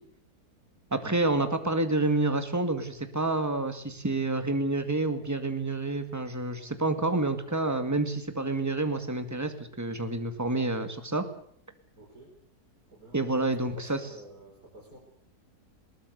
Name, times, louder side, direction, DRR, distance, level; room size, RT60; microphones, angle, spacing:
voice 1, 0.9-11.3 13.1-14.0, right 2 dB, 10° right, 8 dB, 2.0 m, -28 dB
voice 2, 11.9-12.3 12.9-15.0, right 1 dB, 60° right, -3 dB, 5.5 m, -49 dB
21.0 x 19.5 x 8.1 m, 0.63 s
omnidirectional pair, 1.8 m